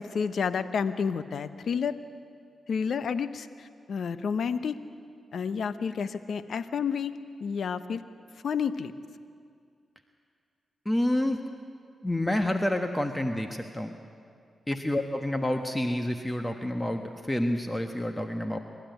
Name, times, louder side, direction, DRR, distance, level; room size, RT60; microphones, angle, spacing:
voice 1, 0.0-1.9 2.7-4.8 5.3-8.0 8.4-8.9, left 6 dB, 70° left, 12 dB, 1.0 m, -30 dB
voice 2, 10.8-11.4 12.0-13.9 14.7-18.6, left 1 dB, 15° left, 6 dB, 1.4 m, -28 dB
27.5 x 13.0 x 9.3 m, 2.3 s
cardioid pair, 55°, 0 cm